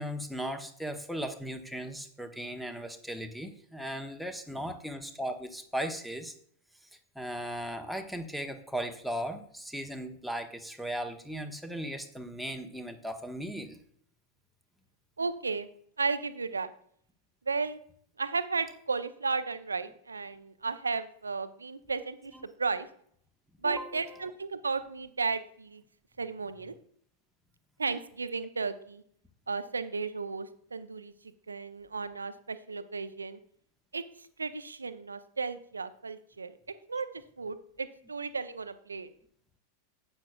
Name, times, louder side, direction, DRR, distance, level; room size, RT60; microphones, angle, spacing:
voice 1, 0.0-6.3 7.1-13.8 22.3-22.4 23.6-24.3, equal, ahead, 7 dB, 1.0 m, -37 dB
voice 2, 15.2-15.7 16.0-16.7 17.5-17.8 18.2-22.3 22.6-22.9 23.6-25.8 26.2-26.7 27.8-29.0 29.5-31.1 31.5-33.4 33.9-36.6 36.9-39.1, right 4 dB, 75° right, 12 dB, 0.6 m, -34 dB
11.5 x 8.9 x 2.3 m, 0.62 s
figure-of-eight pair, 90°, 0 cm